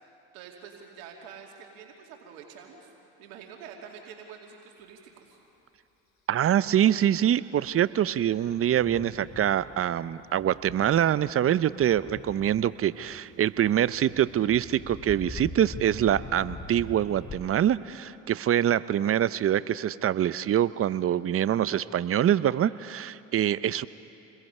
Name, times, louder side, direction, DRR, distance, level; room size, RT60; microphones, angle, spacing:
voice 1, 0.0-2.9 3.2-5.4, right 7 dB, 80° right, 1 dB, 2.5 m, -47 dB
voice 2, 6.3-23.9, right 10 dB, 40° right, 16 dB, 0.7 m, -25 dB
Thunder, 7.6-17.4, left 3 dB, 35° left, 3.3 m, -44 dB
28.0 x 21.5 x 5.5 m, 2.9 s
hypercardioid pair, 75°, 37 cm